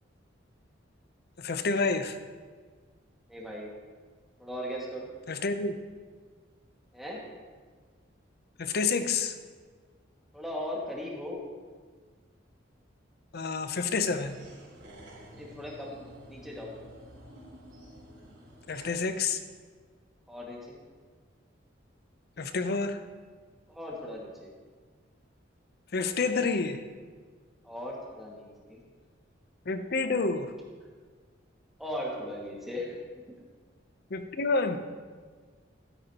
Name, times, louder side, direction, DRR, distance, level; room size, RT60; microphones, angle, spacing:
voice 1, 1.4-2.2 5.3-5.8 8.6-9.3 13.3-14.4 18.7-19.4 22.4-23.0 25.9-26.8 29.7-30.5 34.1-34.8, left 4 dB, 55° left, 9 dB, 0.7 m, -29 dB
voice 2, 3.3-3.7 4.4-5.1 6.9-7.2 10.3-11.4 15.3-16.7 20.3-20.8 23.7-24.5 27.6-28.8 31.8-32.9 33.3-33.4, left 1 dB, ahead, -4 dB, 1.9 m, -38 dB
sound 1, 13.9-18.9, equal, 70° right, 3.3 m, -51 dB
13.0 x 10.5 x 2.9 m, 1.5 s
head